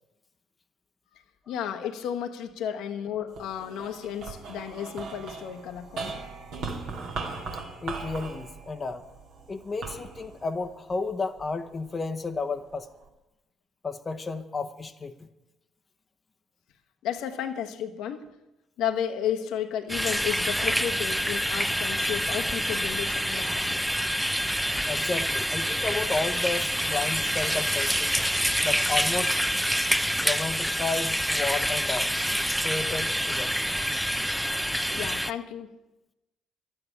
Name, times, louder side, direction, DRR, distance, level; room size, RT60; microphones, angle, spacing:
voice 1, 1.1-6.1 17.0-18.3 18.8-23.8 34.9-35.7, left 9 dB, 60° left, 5 dB, 1.1 m, -33 dB
sound 1, 3.3-11.8 12.3-13.1, right 4 dB, 60° right, 2.4 m, -39 dB
voice 2, 7.8-9.1 9.5-12.9 13.8-15.3 24.8-28.3 28.6-29.3 30.2-32.1 32.6-33.5, left 3 dB, 30° left, 7 dB, 0.9 m, -32 dB
sound 2, 19.9-35.3, equal, ahead, 0.6 m, -27 dB
12.0 x 9.4 x 9.9 m, 0.98 s
figure-of-eight pair, 50°, 0 cm